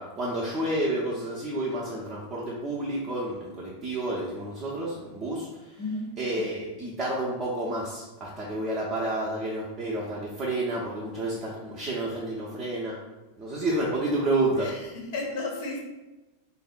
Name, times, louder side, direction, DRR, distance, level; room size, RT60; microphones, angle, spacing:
voice 1, 0.0-13.0 13.4-14.7 15.2-15.3, right 1 dB, 30° right, -5 dB, 0.5 m, -30 dB
voice 2, 5.8-6.2 14.6-15.8, left 2 dB, 50° left, -1 dB, 0.5 m, -33 dB
3.3 x 2.1 x 2.4 m, 1.1 s
figure-of-eight pair, 90°, 0 cm